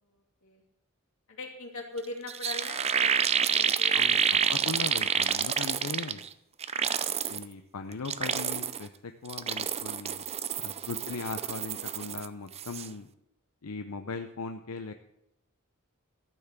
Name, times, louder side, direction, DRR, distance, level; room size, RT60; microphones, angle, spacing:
voice 1, 0.0-0.6 1.3-4.5 6.7-7.2 11.1-11.2, left 3 dB, 65° left, 1 dB, 2.6 m, -42 dB
sound 1, 2.0-2.1 2.3-6.3 6.6-7.4 7.9-8.9 9.3-12.3 12.5-12.9, right 7 dB, 30° right, 0.5 m, -28 dB
voice 2, 4.5-6.2 7.3-10.2 10.6-13.1 13.6-14.9, left 4 dB, 90° left, 6 dB, 0.7 m, -39 dB
14.0 x 5.9 x 7.8 m, 0.84 s
head